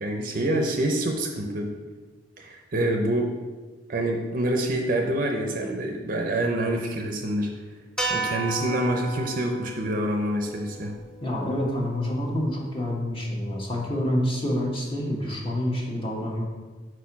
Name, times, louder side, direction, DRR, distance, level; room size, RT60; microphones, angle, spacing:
voice 1, 0.0-1.7 2.4-3.3 3.9-7.5 8.1-10.9, right 1 dB, 45° right, 3 dB, 0.5 m, -26 dB
sound 1, 8.0-12.3, right 2 dB, 5° left, 0.7 m, -34 dB
voice 2, 11.2-16.4, left 1 dB, 30° left, -2 dB, 1.1 m, -27 dB
4.4 x 4.4 x 5.7 m, 1.4 s
head